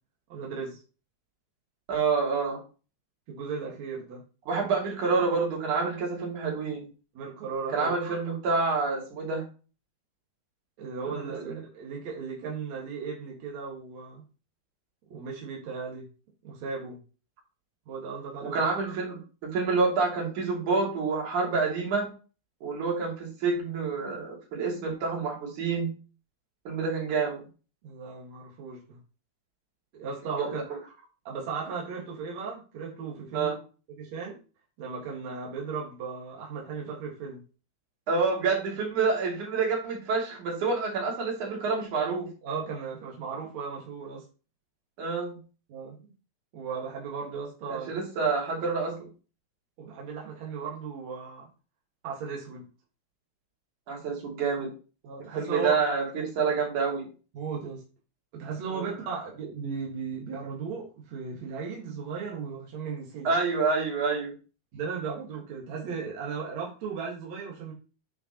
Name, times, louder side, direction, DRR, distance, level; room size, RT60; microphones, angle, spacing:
voice 1, 0.3-0.8 3.3-4.2 7.1-7.9 10.8-14.2 15.1-16.1 16.4-17.0 17.9-18.6 27.8-29.0 29.9-30.6 31.2-33.5 33.9-34.4 34.8-37.4 42.4-44.2 45.7-46.1 46.5-47.9 49.8-51.5 52.0-52.7 55.0-55.8 57.3-57.8 58.3-63.3 64.7-67.7, right 5 dB, 70° right, -2 dB, 3.0 m, -36 dB
voice 2, 1.9-2.6 4.5-6.9 7.7-9.4 11.1-11.6 18.4-22.1 22.6-25.9 26.7-27.4 30.4-30.5 33.3-33.6 38.1-42.3 45.0-45.4 47.7-49.0 53.9-54.7 55.4-57.1 58.7-58.8 63.2-64.3, right 4 dB, 90° right, -1 dB, 4.1 m, -28 dB
9.1 x 6.6 x 3.0 m, 0.35 s
omnidirectional pair, 3.3 m